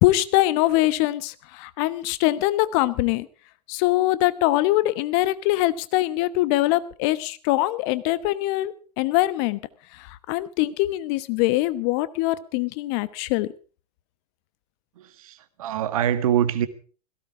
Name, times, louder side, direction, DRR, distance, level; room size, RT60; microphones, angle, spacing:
voice 1, 0.0-3.3 3.7-9.6 9.9-13.5, left 17 dB, 40° left, 16 dB, 1.1 m, -23 dB
voice 2, 15.0-16.7, right 10 dB, 55° right, 12 dB, 1.7 m, -24 dB
17.5 x 15.5 x 4.8 m, 0.40 s
figure-of-eight pair, 100°, 21 cm